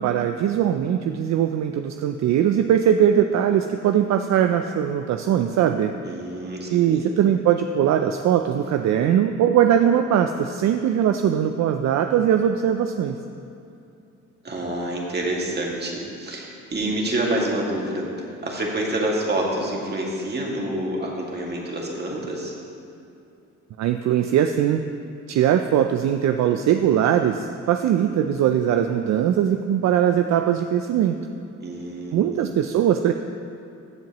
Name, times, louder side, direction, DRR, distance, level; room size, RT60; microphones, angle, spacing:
voice 1, 0.0-6.0 6.7-13.2 23.8-24.9 25.3-31.2 32.1-33.1, right 9 dB, 65° right, 7 dB, 0.5 m, -20 dB
voice 2, 6.0-7.1 14.4-22.5 31.6-32.4, right 1 dB, 35° right, -2 dB, 2.1 m, -27 dB
14.5 x 7.5 x 3.0 m, 2.7 s
cardioid pair, 90°, 30 cm